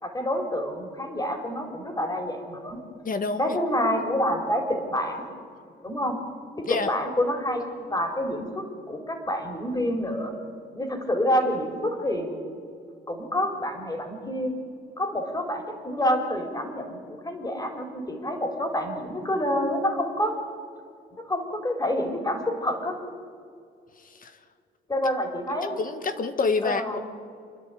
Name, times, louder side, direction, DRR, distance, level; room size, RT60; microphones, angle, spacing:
voice 1, 0.0-2.8 3.4-5.3 5.8-6.2 6.6-10.3 10.7-12.3 13.1-14.5 15.0-20.4 21.3-23.0 24.9-25.8 26.6-27.0, equal, 20° left, 4 dB, 4.2 m, -28 dB
voice 2, 3.0-3.6 6.7-6.9 24.2-24.3 25.8-27.0, left 4 dB, 45° left, 10 dB, 1.5 m, -27 dB
27.5 x 10.5 x 9.3 m, 2.3 s
cardioid pair, 90°, 20 cm